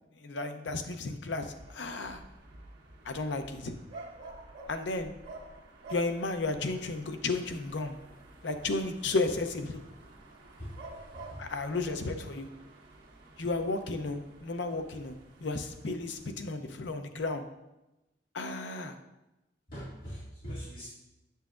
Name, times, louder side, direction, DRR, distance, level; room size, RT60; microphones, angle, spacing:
voice 1, 0.2-2.2 3.0-3.7 4.7-5.1 5.9-7.9 8.4-9.8 11.4-12.5 13.4-15.1 15.4-17.4 18.3-19.0, left 3 dB, 75° left, 7 dB, 0.7 m, -33 dB
sound 1, 1.5-16.3, right 2 dB, 85° right, 1.4 m, -51 dB
voice 2, 11.1-11.4 19.7-21.0, equal, 55° left, -10 dB, 2.1 m, -42 dB
8.1 x 6.9 x 2.5 m, 0.96 s
head